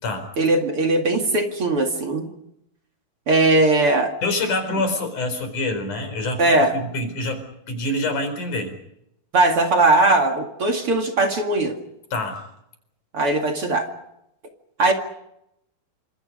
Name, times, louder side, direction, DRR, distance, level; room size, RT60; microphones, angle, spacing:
voice 1, 0.4-2.3 3.3-4.1 6.4-6.7 9.3-11.8 13.1-13.9 14.8-14.9, right 2 dB, 40° right, 3 dB, 2.6 m, -19 dB
voice 2, 4.2-6.4 6.7-8.7 12.1-12.4, left 2 dB, 50° left, 7 dB, 5.8 m, -26 dB
28.0 x 26.5 x 5.3 m, 0.79 s
omnidirectional pair, 4.5 m